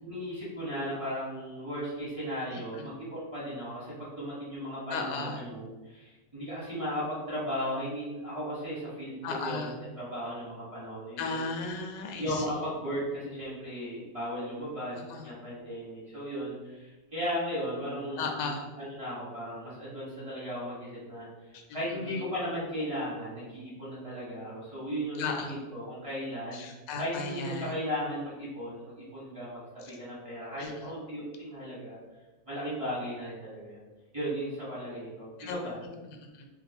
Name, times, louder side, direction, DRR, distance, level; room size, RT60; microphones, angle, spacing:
voice 1, 0.0-11.4 12.2-18.5 18.8-26.6 27.0-32.0 32.5-33.8 34.1-35.8, equal, 20° right, -9 dB, 1.3 m, -36 dB
voice 2, 2.5-2.9 4.9-5.4 9.2-9.8 11.2-12.7 15.1-15.3 18.2-18.6 21.5-22.2 25.2-25.5 26.5-27.7 29.8-29.9 30.6-30.9 35.4-36.5, left 4 dB, 80° left, 3 dB, 1.2 m, -36 dB
2.9 x 2.5 x 4.1 m, 1.2 s
omnidirectional pair, 2.0 m